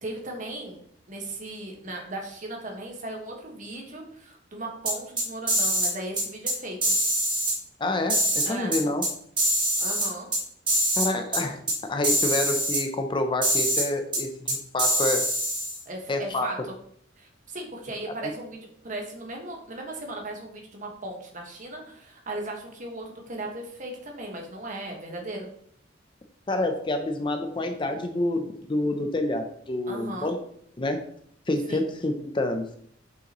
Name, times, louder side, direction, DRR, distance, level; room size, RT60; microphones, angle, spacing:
voice 1, 0.0-0.8 1.1-6.9 8.4-8.8 9.8-10.3 15.8-16.7 17.2-25.5 29.9-30.3 31.7-31.8, right 2 dB, 45° right, 1 dB, 1.4 m, -37 dB
sound 1, 4.9-5.9 6.2-6.5 6.8-7.5 8.1-9.1 9.4-10.4 10.7-11.1 11.3-11.4 11.7-11.8 12.0-12.8 13.4-13.8 14.1-14.2 14.5-15.8, right 1 dB, 25° right, 1.7 m, -24 dB
voice 2, 7.8-9.0 11.0-15.3 16.1-16.5 18.2-18.3 26.5-30.4 30.8-31.0 31.5-32.7, left 2 dB, 25° left, 6 dB, 0.5 m, -28 dB
6.4 x 5.6 x 3.0 m, 0.66 s
head